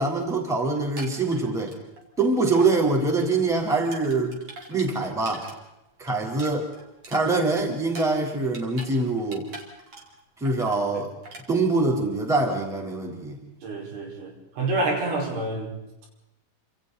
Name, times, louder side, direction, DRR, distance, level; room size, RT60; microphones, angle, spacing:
voice 1, 0.0-1.7 2.2-4.4 4.7-5.5 6.0-6.7 7.1-9.4 10.4-11.1 11.5-13.4, right 3 dB, ahead, 0 dB, 3.1 m, -24 dB
sound 1, 0.8-2.2 2.5-2.7 3.1-5.5 5.9-8.9 9.2-10.2 10.4-10.8 11.2-11.4, right 2 dB, 35° right, 4.1 m, -43 dB
voice 2, 13.6-15.7, right 2 dB, 90° right, -1 dB, 7.5 m, -28 dB
29.5 x 27.0 x 4.2 m, 0.90 s
omnidirectional pair, 5.3 m